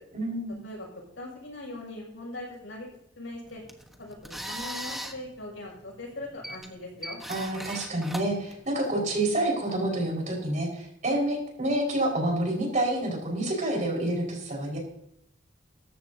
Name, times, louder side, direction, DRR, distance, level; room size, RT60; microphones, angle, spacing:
voice 1, 0.1-0.6 7.3-14.8, right 1 dB, 40° right, 0 dB, 5.2 m, -28 dB
voice 2, 1.2-2.9 3.1-3.6 4.0-7.2, left 2 dB, 80° left, -2 dB, 6.6 m, -40 dB
sound 1, 3.5-9.1, equal, ahead, 1.2 m, -40 dB
17.5 x 14.5 x 2.8 m, 0.76 s
head